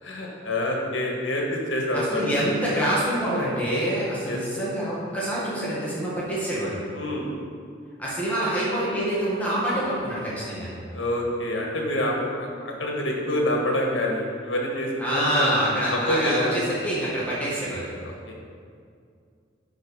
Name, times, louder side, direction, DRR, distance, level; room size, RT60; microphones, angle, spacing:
voice 1, 0.0-2.5 4.2-4.4 6.9-7.3 10.9-15.5 15.9-16.5 18.0-18.3, left 1 dB, 85° left, -1 dB, 1.6 m, -27 dB
voice 2, 1.9-6.8 8.0-10.7 15.0-17.9, right 1 dB, 10° left, -8 dB, 1.7 m, -26 dB
10.5 x 4.7 x 4.7 m, 2.3 s
head